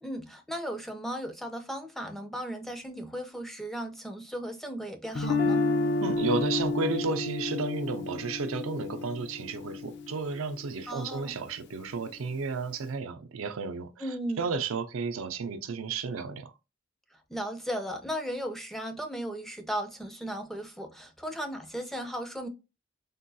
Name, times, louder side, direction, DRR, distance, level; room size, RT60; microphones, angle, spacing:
voice 1, 0.0-5.7 10.9-11.3 14.0-14.4 17.3-22.5, equal, ahead, 0.4 m, -36 dB
Guitar, 5.1-11.2, left 3 dB, 55° left, 0.5 m, -30 dB
voice 2, 6.0-14.0 14.4-16.5, right 4 dB, 85° right, 0.5 m, -32 dB
3.7 x 2.2 x 2.6 m
head